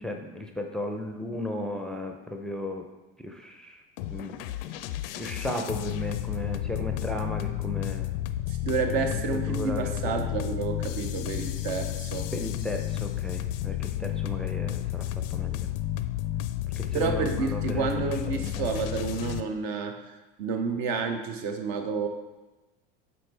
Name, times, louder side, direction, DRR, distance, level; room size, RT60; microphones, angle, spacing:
voice 1, 0.0-2.8 3.2-3.8 4.1-4.4 5.2-8.2 9.0-10.1 12.3-15.7 16.8-17.9 18.3-18.7, left 1 dB, ahead, 3 dB, 0.5 m, -35 dB
sound 1, 4.0-19.4, left 13 dB, 75° left, 0.5 m, -32 dB
voice 2, 8.5-12.3 16.9-22.1, right 5 dB, 60° right, 6 dB, 0.9 m, -30 dB
7.6 x 4.4 x 3.3 m, 1.1 s
supercardioid pair, 100°, 29 cm